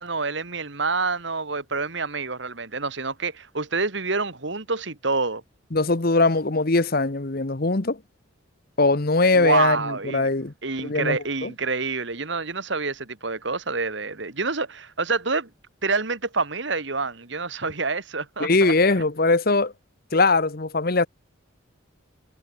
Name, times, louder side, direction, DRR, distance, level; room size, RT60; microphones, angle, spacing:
voice 1, 0.0-5.4 9.3-10.3 10.6-15.5 15.8-18.7, right 4 dB, 60° right, 2.0 m, -27 dB
voice 2, 5.7-8.0 8.8-10.5 10.8-11.5 18.4-19.7 20.1-21.1, left 3 dB, 45° left, 1.1 m, -21 dB
head